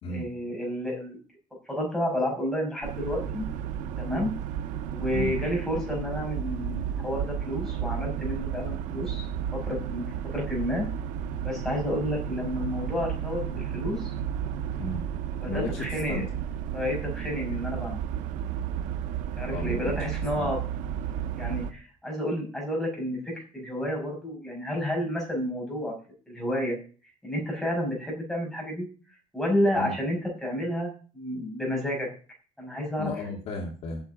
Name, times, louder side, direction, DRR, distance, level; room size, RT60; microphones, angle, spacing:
voice 1, 0.1-1.2 1.7-3.4 4.0-4.3 4.9-9.3 9.5-10.8 11.4-14.1 15.4-16.2 16.7-18.0 19.4-20.6 21.4-25.9 26.3-26.8 27.2-28.9 29.3-32.1 32.6-33.0, left 1 dB, 5° left, -1 dB, 5.4 m, -30 dB
sound 1, 2.8-21.7, right 9 dB, 70° right, 1.1 m, -33 dB
voice 2, 15.5-16.2 19.5-20.0 20.4-20.5 29.7-29.9 33.0-34.0, left 2 dB, 50° left, 1 dB, 2.6 m, -33 dB
8.7 x 7.2 x 8.8 m, 0.38 s
cardioid pair, 170°, 13 cm